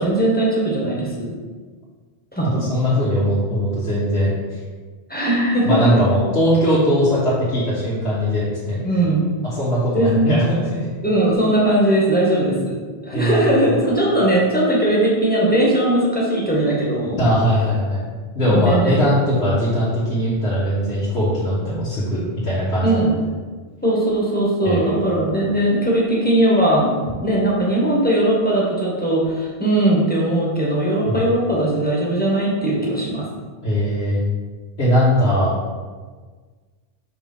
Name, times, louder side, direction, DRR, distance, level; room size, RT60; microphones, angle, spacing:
voice 1, 0.0-1.3 2.3-2.7 5.1-6.0 8.8-9.3 9.9-10.3 11.0-17.2 18.4-19.1 22.8-23.1 23.8-26.9 27.2-33.2, right 1 dB, 10° left, -5 dB, 1.4 m, -19 dB
voice 2, 2.4-4.6 5.6-8.8 9.4-10.4 10.7-10.9 13.1-13.8 17.2-18.0 18.3-23.0 24.6-25.1 31.0-31.2 33.6-34.2 34.8-35.5, equal, 80° left, -11 dB, 1.7 m, -20 dB
5.1 x 3.5 x 5.5 m, 1.5 s
omnidirectional pair, 1.1 m